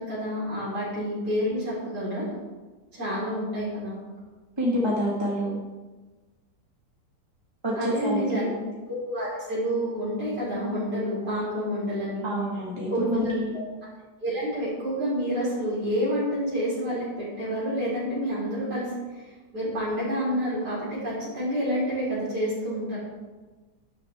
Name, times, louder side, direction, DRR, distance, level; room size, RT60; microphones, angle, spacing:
voice 1, 0.0-2.3 2.9-4.0 7.8-8.5 8.9-12.3 12.9-13.6 14.2-19.2 19.5-23.0, equal, 65° right, -9 dB, 5.1 m, -28 dB
voice 2, 4.6-5.6 7.6-8.5 12.2-13.5, equal, 15° right, -5 dB, 2.0 m, -27 dB
12.5 x 11.5 x 3.7 m, 1.3 s
omnidirectional pair, 1.9 m